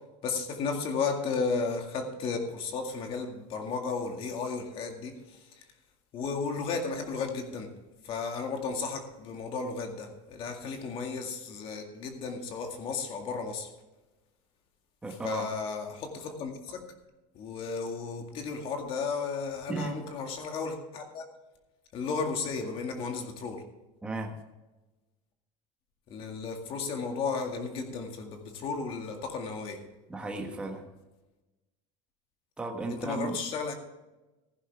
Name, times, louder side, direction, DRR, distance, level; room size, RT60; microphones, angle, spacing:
voice 1, 0.2-5.7 6.1-7.7 8.0-13.7 15.2-16.8 17.3-21.3 21.9-23.6 26.1-29.8 32.9-33.7, left 4 dB, 35° left, 4 dB, 2.1 m, -34 dB
voice 2, 15.0-15.5 19.7-20.0 24.0-24.3 30.1-30.8 32.6-33.4, right 3 dB, 5° right, 2 dB, 1.4 m, -35 dB
15.0 x 11.0 x 3.5 m, 1.1 s
cardioid pair, 175°, 16 cm